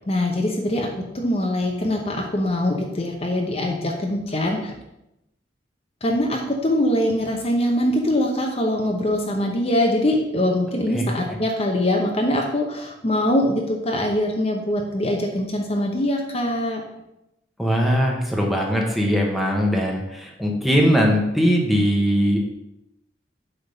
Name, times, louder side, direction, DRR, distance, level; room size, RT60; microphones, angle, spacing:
voice 1, 0.1-0.9 1.1-4.8 6.0-16.8, left 1 dB, 35° left, 1 dB, 0.9 m, -23 dB
voice 2, 10.9-11.4 17.6-22.4, equal, ahead, -1 dB, 1.1 m, -20 dB
8.2 x 3.7 x 5.3 m, 0.87 s
head